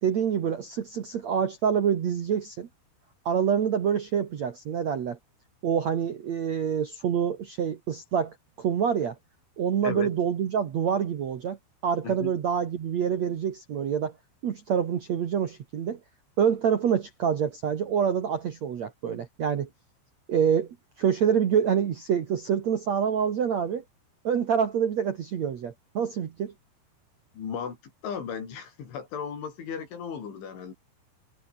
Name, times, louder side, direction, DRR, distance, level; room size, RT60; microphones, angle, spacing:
voice 1, 0.0-2.7 3.3-5.2 5.6-9.2 9.6-11.6 11.8-14.1 14.4-16.0 16.4-19.7 20.3-20.7 21.0-23.8 24.2-26.5, right 8 dB, 60° right, 1.9 m, -26 dB
voice 2, 27.3-27.8 28.0-30.7, left 7 dB, 80° left, 7.3 m, -35 dB
omnidirectional pair, 5.4 m